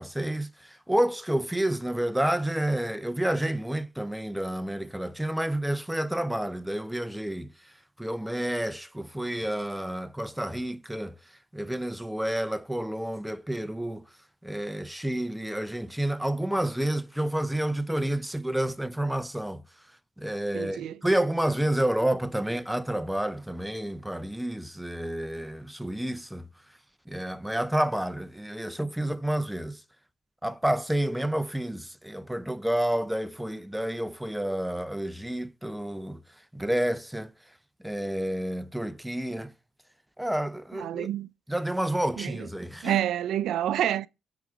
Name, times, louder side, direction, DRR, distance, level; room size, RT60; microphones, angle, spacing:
voice 1, 0.0-7.5 8.0-11.2 11.5-14.0 14.4-19.6 20.2-26.5 27.1-29.8 30.4-36.2 36.5-37.3 37.8-39.5 40.2-41.1 41.5-43.0, right 1 dB, 5° right, 0.5 m, -29 dB
voice 2, 20.5-21.0 40.7-41.3 42.2-42.4 42.8-44.1, right 11 dB, 75° right, 0.4 m, -28 dB
8.3 x 4.0 x 4.8 m
cardioid pair, 90°, 0 cm